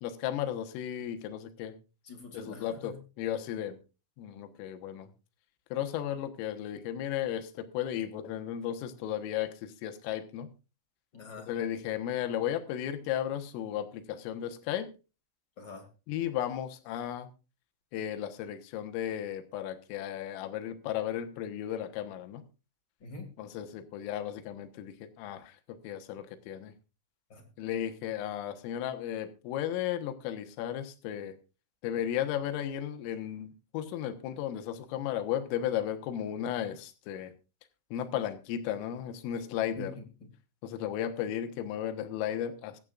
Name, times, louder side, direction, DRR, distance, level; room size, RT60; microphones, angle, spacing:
voice 1, 0.0-1.7 2.3-3.8 4.2-5.1 5.7-10.5 11.5-14.9 16.1-17.3 17.9-22.4 23.4-25.5 25.8-26.7 27.6-31.4 31.8-37.3 37.9-39.9 40.6-42.8, left 10 dB, 80° left, 7 dB, 3.8 m, -34 dB
voice 2, 2.0-3.0 11.1-11.5 15.6-15.9 23.0-23.3 27.3-27.5 38.1-38.2 39.8-40.3, left 3 dB, 35° left, 5 dB, 1.9 m, -45 dB
24.0 x 8.7 x 2.5 m, 0.31 s
omnidirectional pair, 5.9 m